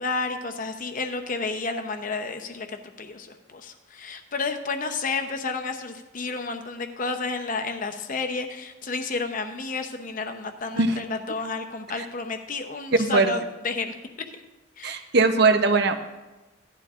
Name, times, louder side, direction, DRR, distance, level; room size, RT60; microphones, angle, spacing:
voice 1, 0.0-13.9 14.8-15.0, left 4 dB, 45° left, 6 dB, 0.8 m, -31 dB
voice 2, 13.0-13.3 14.8-16.0, right 3 dB, 55° right, 8 dB, 0.8 m, -20 dB
16.0 x 11.5 x 2.5 m, 1.1 s
head